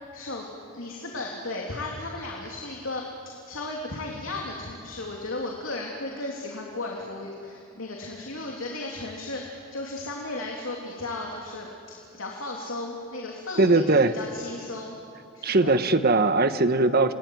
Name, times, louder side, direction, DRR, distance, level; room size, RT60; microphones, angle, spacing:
voice 1, 0.1-15.0 15.3-15.7, left 2 dB, 75° left, -1 dB, 3.2 m, -35 dB
voice 2, 13.6-14.1 15.4-17.1, right 3 dB, 50° right, 10 dB, 1.3 m, -20 dB
30.0 x 20.0 x 9.5 m, 2.6 s
head